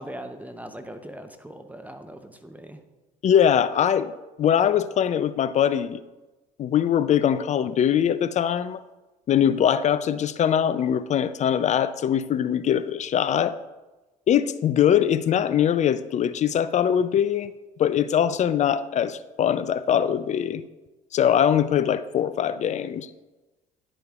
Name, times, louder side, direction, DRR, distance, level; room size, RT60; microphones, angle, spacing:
voice 1, 0.0-2.8, right 1 dB, 10° right, 7 dB, 0.7 m, -40 dB
voice 2, 3.2-4.1 4.4-6.0 6.6-8.8 9.3-13.6 14.3-17.5 17.8-20.6 21.1-23.1, left 9 dB, 40° left, 14 dB, 0.4 m, -22 dB
11.0 x 5.0 x 2.4 m, 1.1 s
hypercardioid pair, 60°, 19 cm